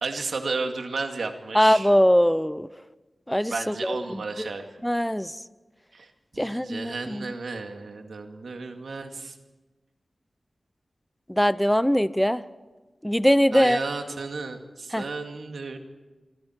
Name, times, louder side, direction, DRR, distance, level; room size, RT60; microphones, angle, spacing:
voice 1, 0.0-1.9 3.5-4.6 5.9-9.4 13.5-15.8, right 3 dB, 90° right, 4 dB, 2.2 m, -33 dB
voice 2, 1.5-2.7 3.3-4.5 4.8-5.3 6.4-7.3 11.3-12.4 13.0-13.8 14.9-15.0, equal, 5° left, 15 dB, 0.7 m, -22 dB
26.0 x 25.5 x 4.6 m, 1.2 s
wide cardioid pair, 65°, 0 cm